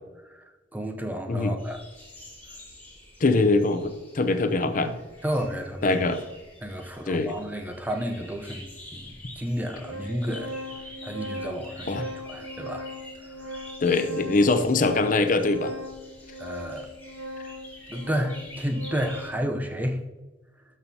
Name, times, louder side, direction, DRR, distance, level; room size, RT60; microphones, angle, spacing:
voice 1, 0.2-1.8 5.2-6.0 6.6-10.6 11.0-12.9 13.2-13.6 14.4-14.5 16.4-16.9 17.9-20.0, equal, 10° right, 4 dB, 0.6 m, -32 dB
sound 1, 1.6-19.3, left 1 dB, 10° left, 2.8 m, -48 dB
voice 2, 3.2-4.9 5.8-6.2 7.1-7.3 11.9-12.0 13.8-15.7, left 3 dB, 45° left, 8 dB, 0.6 m, -23 dB
Organ, 8.1-8.2 9.1-9.2 9.5-19.4, equal, 85° right, 1.1 m, -39 dB
12.5 x 6.2 x 2.8 m, 1.2 s
head